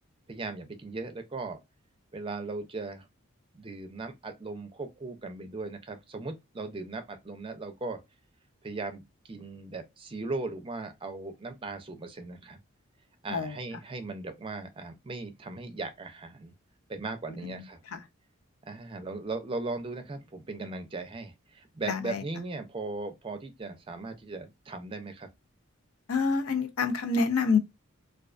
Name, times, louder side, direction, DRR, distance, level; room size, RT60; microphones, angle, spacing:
voice 1, 0.3-1.6 2.1-3.1 3.5-8.0 8.6-12.6 13.2-16.5 16.9-17.8 18.6-25.3, right 3 dB, 25° right, 0.4 m, -38 dB
voice 2, 17.3-18.0 21.9-22.2 26.1-27.6, left 4 dB, 80° left, 0.5 m, -28 dB
2.3 x 2.2 x 2.4 m
head